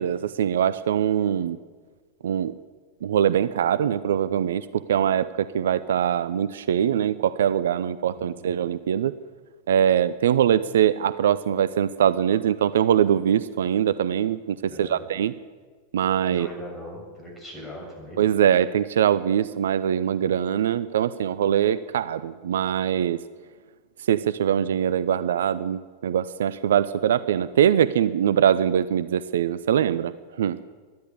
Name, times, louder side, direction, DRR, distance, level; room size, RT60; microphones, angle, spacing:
voice 1, 0.0-1.6 2.2-2.6 3.0-9.1 9.7-15.3 15.9-16.5 18.2-23.2 24.1-30.6, right 9 dB, 60° right, 15 dB, 0.4 m, -22 dB
voice 2, 8.1-8.5 14.7-15.0 16.3-18.2, left 1 dB, 10° left, -1 dB, 6.6 m, -40 dB
12.5 x 10.5 x 9.6 m, 1.5 s
figure-of-eight pair, 90°, 0 cm